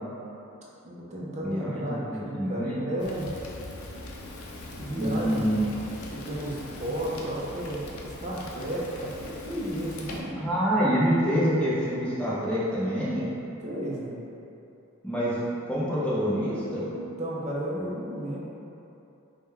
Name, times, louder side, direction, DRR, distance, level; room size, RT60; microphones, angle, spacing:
voice 1, 0.8-3.3 4.8-5.8 6.2-10.3 13.6-14.2 17.0-18.4, right 1 dB, 30° right, -5 dB, 0.6 m, -33 dB
voice 2, 1.4-2.8 4.9-5.6 10.4-13.3 15.0-16.9, equal, 5° left, -9 dB, 0.7 m, -26 dB
Fire, 3.0-10.2, left 2 dB, 75° left, 0.5 m, -41 dB
5.0 x 2.2 x 3.3 m, 2.8 s
head